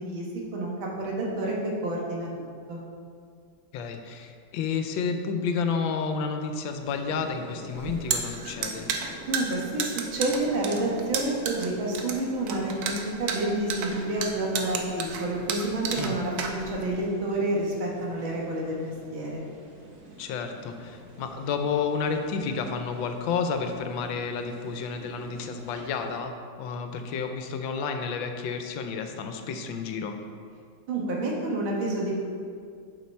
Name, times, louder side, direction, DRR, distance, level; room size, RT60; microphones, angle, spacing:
voice 1, 0.0-2.8 9.3-19.4 30.9-32.3, right 1 dB, 85° right, -2 dB, 2.1 m, -29 dB
voice 2, 3.7-8.9 15.9-16.2 20.2-26.3 26.6-30.2, left 5 dB, 80° left, 6 dB, 1.4 m, -30 dB
sound 1, 6.8-26.2, right 1 dB, 45° right, 1.2 m, -47 dB
sound 2, 7.8-17.0, right 6 dB, 65° right, 1.0 m, -32 dB
7.2 x 5.8 x 4.4 m, 2.2 s
omnidirectional pair, 2.1 m